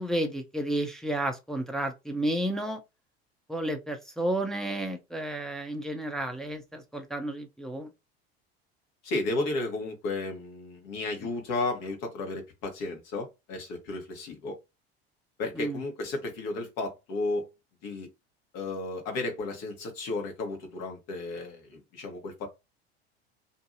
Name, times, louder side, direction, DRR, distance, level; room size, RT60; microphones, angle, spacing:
voice 1, 0.0-2.8 3.5-7.9 15.6-15.8, right 1 dB, ahead, 0.5 m, -31 dB
voice 2, 9.0-14.6 15.4-17.5 17.8-18.1 18.5-22.5, left 2 dB, 55° left, 1.2 m, -33 dB
2.7 x 2.6 x 2.5 m
hypercardioid pair, 75°, 32 cm